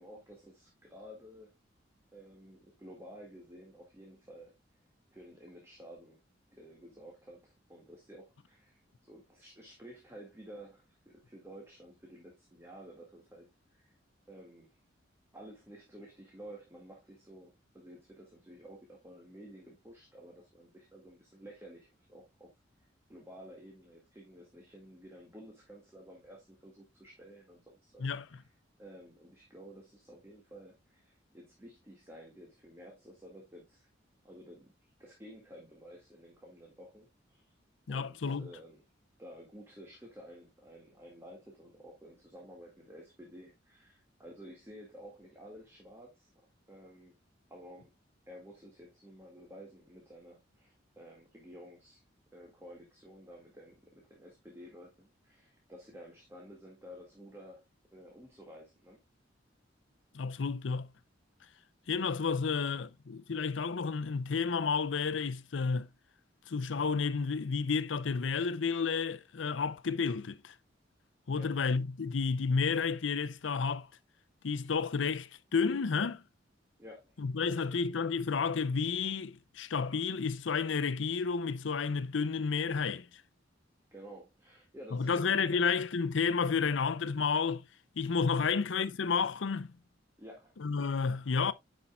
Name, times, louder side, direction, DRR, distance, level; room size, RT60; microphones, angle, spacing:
voice 1, 0.0-1.5 2.1-4.5 5.1-6.2 6.5-13.9 14.3-14.7 15.3-22.5 23.1-28.4 28.8-33.9 34.2-37.4 37.9-38.8 39.2-46.3 46.7-47.2 47.5-47.9 48.3-52.0 52.3-57.6 57.9-59.0 62.5-62.9 71.3-71.5 76.8-77.2 77.4-77.9 83.9-85.7 88.4-88.6 90.2-90.5, equal, 15° right, 2.0 m, -52 dB
voice 2, 28.0-28.4 37.9-38.5 60.1-60.9 61.9-65.9 66.5-70.5 71.3-73.9 74.4-76.2 77.2-83.1 84.9-87.6 88.0-89.7 90.6-91.5, left 5 dB, 90° left, 0.6 m, -31 dB
10.0 x 5.5 x 2.3 m
head